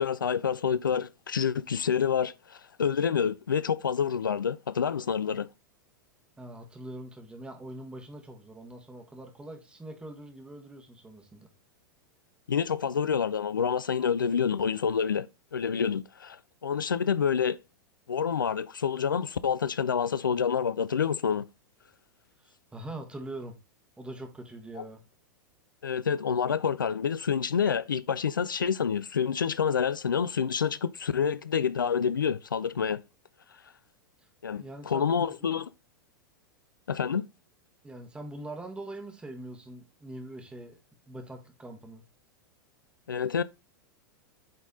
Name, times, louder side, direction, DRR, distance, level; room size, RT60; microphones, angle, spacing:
voice 1, 0.0-5.5 12.5-15.3 15.5-17.6 18.1-21.5 24.8-24.9 25.8-33.0 34.4-35.7 36.9-37.2 43.1-43.4, left 7 dB, 75° left, 0.4 m, -28 dB
voice 2, 6.4-11.5 22.4-23.6 24.0-25.0 34.6-35.5 37.8-40.8 41.1-42.0, right 1 dB, 10° right, 1.6 m, -43 dB
8.7 x 4.1 x 3.7 m
figure-of-eight pair, 95°, 11 cm